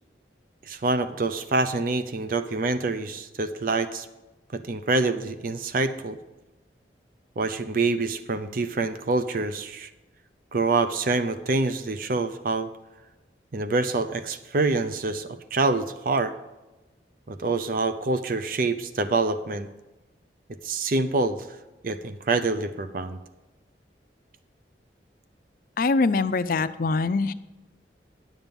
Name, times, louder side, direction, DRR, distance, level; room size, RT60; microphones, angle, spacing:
voice 1, 0.7-4.1 4.5-6.2 7.4-9.9 10.5-12.7 13.5-16.3 17.3-19.7 20.6-21.4 21.8-23.2, right 3 dB, 50° right, 11 dB, 0.6 m, -26 dB
voice 2, 25.8-27.3, left 3 dB, 50° left, 13 dB, 0.5 m, -23 dB
10.5 x 7.3 x 5.3 m, 1.1 s
head